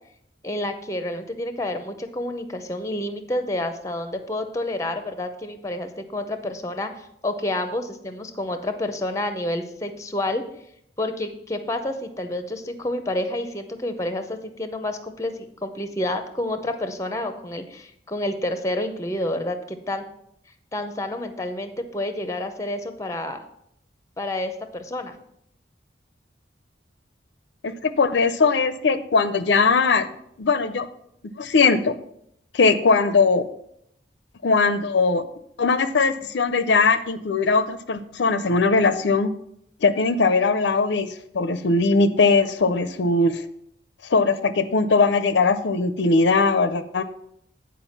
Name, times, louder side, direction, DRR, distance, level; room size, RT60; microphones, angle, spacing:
voice 1, 0.4-10.4 11.0-15.3 15.6-20.0 20.7-23.4 24.2-25.1, left 1 dB, 15° left, 8 dB, 0.6 m, -29 dB
voice 2, 27.6-30.1 30.4-30.9 31.4-32.0 32.5-33.5 34.4-35.2 35.6-39.3 39.8-43.4 44.0-47.0, left 4 dB, 70° left, 12 dB, 0.5 m, -20 dB
9.0 x 4.7 x 5.8 m, 0.74 s
head